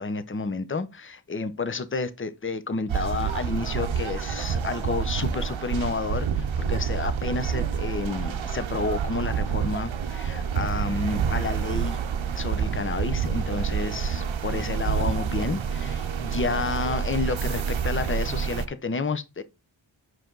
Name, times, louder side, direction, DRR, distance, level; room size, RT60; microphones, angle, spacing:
voice 1, 0.0-12.0 12.3-19.4, left 4 dB, 25° left, 0.7 m, -30 dB
sound 1, 2.9-18.7, right 7 dB, 75° right, 0.7 m, -28 dB
6.2 x 4.9 x 3.8 m
wide cardioid pair, 65°, 47 cm